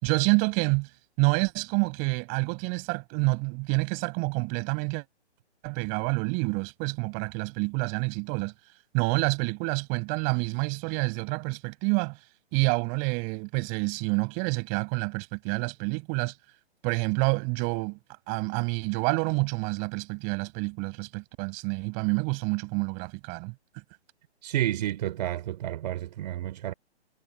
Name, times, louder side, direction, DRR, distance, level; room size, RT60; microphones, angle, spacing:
voice 1, 0.0-0.9 1.2-5.0 5.6-8.5 8.9-12.2 12.5-16.3 16.8-18.0 18.3-23.5, right 34 dB, 25° right, 7.1 m, -28 dB
voice 2, 24.4-26.7, right 13 dB, 40° right, 5.4 m, -30 dB
hypercardioid pair, 155°, 34 cm